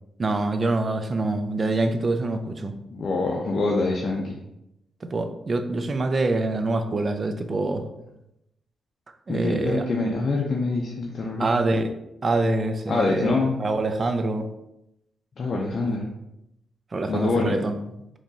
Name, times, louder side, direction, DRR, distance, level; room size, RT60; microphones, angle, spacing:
voice 1, 0.2-2.7 5.0-7.8 9.3-9.8 11.4-11.9 12.2-14.5 15.9-16.0 16.9-17.8, right 2 dB, 40° right, 7 dB, 0.5 m, -25 dB
voice 2, 2.9-4.4 9.3-11.5 12.9-13.6 15.4-16.1 17.1-17.6, left 3 dB, 55° left, -2 dB, 0.6 m, -25 dB
4.2 x 3.0 x 2.7 m, 0.86 s
cardioid pair, 75°, 0 cm